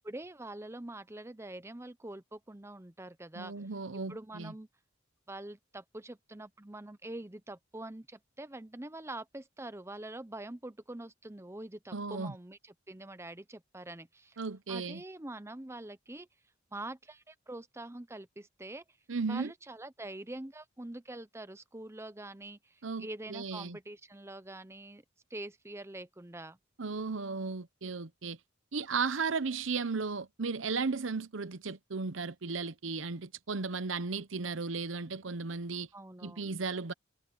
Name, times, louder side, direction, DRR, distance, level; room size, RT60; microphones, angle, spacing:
voice 1, 0.0-3.5 4.1-4.7 5.3-14.4 14.7-16.3 16.7-18.8 19.3-25.0 25.3-26.6 35.9-36.5, right 1 dB, 15° right, 0.8 m, -45 dB
voice 2, 3.3-4.5 11.9-12.3 14.4-15.0 19.1-19.5 22.8-23.8 26.8-28.4 28.7-35.9 36.2-36.9, right 4 dB, 80° right, 0.9 m, -35 dB
head